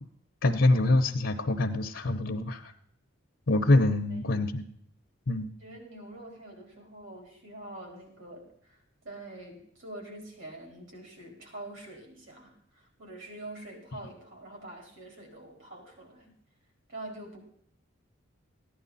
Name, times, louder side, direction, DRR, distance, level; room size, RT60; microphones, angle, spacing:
voice 1, 0.4-2.7 3.5-4.6 5.3-5.5, left 2 dB, 65° left, 4 dB, 0.8 m, -25 dB
voice 2, 5.6-16.3 16.9-17.4, right 1 dB, 70° right, 1 dB, 4.5 m, -45 dB
15.5 x 10.5 x 4.1 m, 0.68 s
head